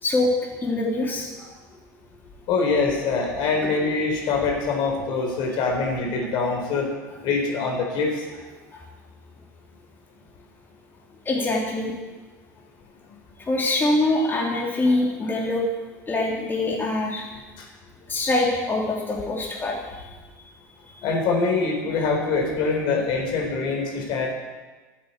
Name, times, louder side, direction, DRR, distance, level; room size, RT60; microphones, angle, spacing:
voice 1, 0.6-1.5 8.7-8.8 11.3-11.9 13.4-15.6 16.1-17.3 18.1-20.2 20.9-21.1, left 2 dB, 20° left, -3 dB, 3.5 m, -24 dB
voice 2, 2.5-6.9 7.2-8.1 21.0-24.3, left 4 dB, 50° left, 1 dB, 4.2 m, -24 dB
13.0 x 9.5 x 8.3 m, 1.3 s
figure-of-eight pair, 75°, 10 cm